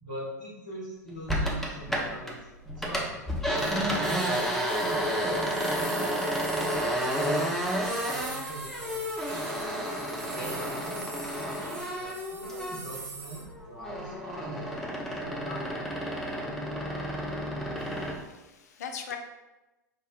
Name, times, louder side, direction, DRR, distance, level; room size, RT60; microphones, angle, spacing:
voice 1, 0.0-2.5 2.8-3.3 3.7-6.7 7.1-9.5 10.3-16.0, right 1 dB, 80° left, -7 dB, 1.1 m, -42 dB
sound 1, 1.3-2.4 2.7-13.0 13.4-18.2, equal, ahead, 0.5 m, -31 dB
sound 2, 3.6-13.4, right 3 dB, 35° right, 0.9 m, -43 dB
voice 2, 17.8-19.2, left 7 dB, 60° left, 5 dB, 0.4 m, -41 dB
4.9 x 2.1 x 2.3 m, 1.0 s
figure-of-eight pair, 90°, 10 cm